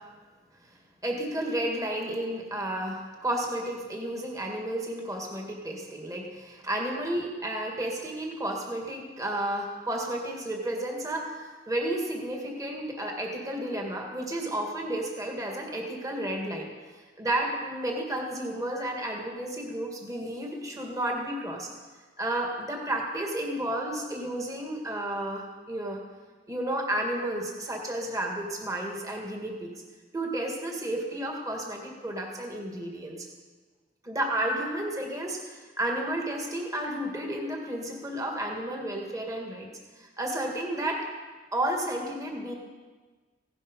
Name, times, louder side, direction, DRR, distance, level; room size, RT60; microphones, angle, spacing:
voice 1, 1.0-16.7 17.2-21.7 22.2-26.0 26.5-29.7 30.1-33.3 34.0-39.7 40.0-41.0 41.5-42.5, right 1 dB, 20° right, 0 dB, 2.0 m, -32 dB
16.5 x 11.5 x 5.4 m, 1.4 s
head